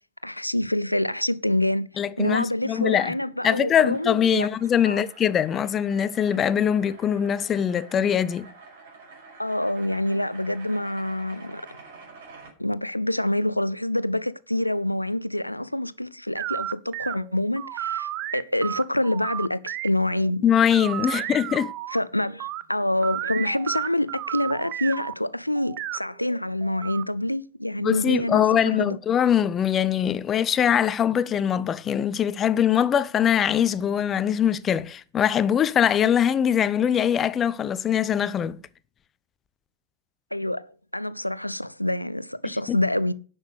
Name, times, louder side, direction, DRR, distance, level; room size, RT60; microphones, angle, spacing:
voice 1, 0.2-1.9 2.2-4.5 4.9-5.0 9.4-11.6 12.6-20.4 21.2-21.3 21.9-29.0 40.3-43.1, left 1 dB, 90° left, 0.5 m, -26 dB
voice 2, 2.0-3.1 3.4-8.5 20.4-21.7 27.8-38.6 42.7-42.8, left 9 dB, 25° left, 0.6 m, -22 dB
sound 1, 3.1-12.5, right 4 dB, 55° right, 5.0 m, -48 dB
sound 2, 16.4-20.3 20.7-22.6 23.0-25.1 25.6-27.0, right 13 dB, 40° right, 0.7 m, -33 dB
10.5 x 6.4 x 8.1 m
figure-of-eight pair, 90°, 0 cm